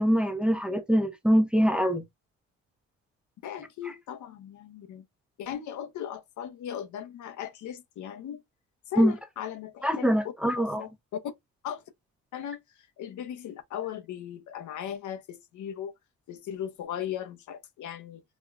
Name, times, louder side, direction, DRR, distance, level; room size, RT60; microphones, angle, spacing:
voice 1, 0.0-2.0 9.0-9.1 9.8-10.8, equal, 5° right, 0.7 m, -23 dB
voice 2, 3.4-5.1 5.4-8.4 8.9-10.1 10.6-10.9 11.2-11.3 11.6-11.8 12.3-15.9 16.3-18.2, left 9 dB, 75° left, 0.8 m, -37 dB
5.0 x 2.2 x 2.4 m
cardioid pair, 90°, 30 cm